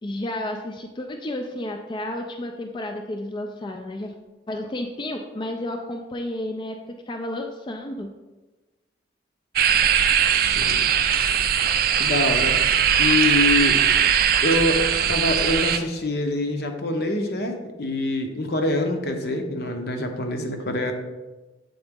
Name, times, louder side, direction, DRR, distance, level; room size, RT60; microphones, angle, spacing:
voice 1, 0.0-4.1 4.5-6.8 7.1-8.1, left 1 dB, 25° left, 3 dB, 0.4 m, -31 dB
sound 1, 9.6-15.8, right 8 dB, 55° right, 0.4 m, -20 dB
voice 2, 10.3-10.9 12.0-13.8 14.4-20.9, left 2 dB, 65° left, 4 dB, 0.7 m, -25 dB
7.9 x 3.9 x 3.6 m, 1.2 s
head